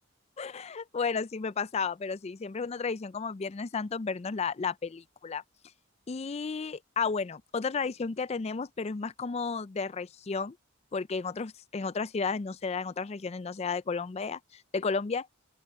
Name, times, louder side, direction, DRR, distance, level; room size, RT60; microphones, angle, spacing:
voice 1, 0.4-5.4 6.1-10.6 10.9-15.3, left 5 dB, 30° left, 0.4 m, -33 dB
open air
head